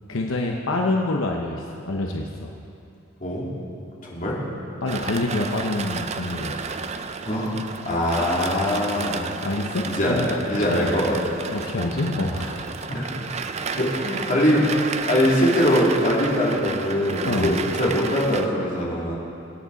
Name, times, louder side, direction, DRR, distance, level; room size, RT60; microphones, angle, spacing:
voice 1, 0.1-2.5 4.8-6.6 9.4-10.3 10.6-10.9 11.5-12.7 17.3-17.6, left 2 dB, 80° left, 1 dB, 0.9 m, -26 dB
sound 1, 4.9-18.5, right 5 dB, 35° right, 0.5 m, -32 dB
voice 2, 7.3-7.6 7.9-9.3 9.9-11.2 11.8-11.9 12.9-13.2 13.7-14.8 15.1-19.2, equal, 40° left, -6 dB, 3.0 m, -22 dB
23.5 x 8.9 x 4.1 m, 2.6 s
head